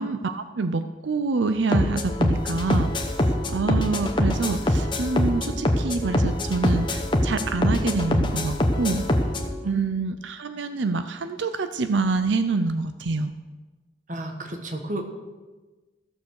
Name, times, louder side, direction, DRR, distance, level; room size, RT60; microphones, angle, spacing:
voice 1, 0.0-9.0 9.6-13.3, right 3 dB, 85° right, 10 dB, 0.6 m, -26 dB
sound 1, 1.7-9.5, left 1 dB, 25° left, 1.0 m, -24 dB
voice 2, 14.1-15.0, right 1 dB, 45° right, 4 dB, 1.4 m, -32 dB
14.5 x 7.0 x 6.5 m, 1.3 s
head